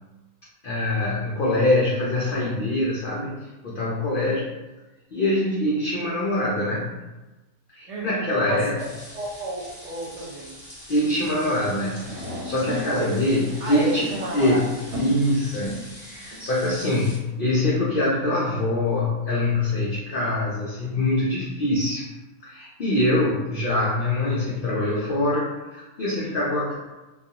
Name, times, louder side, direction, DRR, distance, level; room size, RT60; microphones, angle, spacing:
voice 1, 0.6-3.4 3.6-4.5 5.1-6.9 7.7-8.8 10.9-12.1 12.4-14.1 14.3-22.1 22.4-25.5 25.7-26.7, left 1 dB, 80° left, -6 dB, 0.4 m, -24 dB
voice 2, 7.9-8.9 9.1-10.5 12.9-13.1 13.6-14.6, right 2 dB, 60° right, -5 dB, 0.9 m, -31 dB
sound 1, 8.8-17.2, equal, 25° left, 0.7 m, -44 dB
sound 2, 11.1-17.2, left 1 dB, 90° right, 1.2 m, -37 dB
2.4 x 2.3 x 2.7 m, 1.1 s
omnidirectional pair, 1.5 m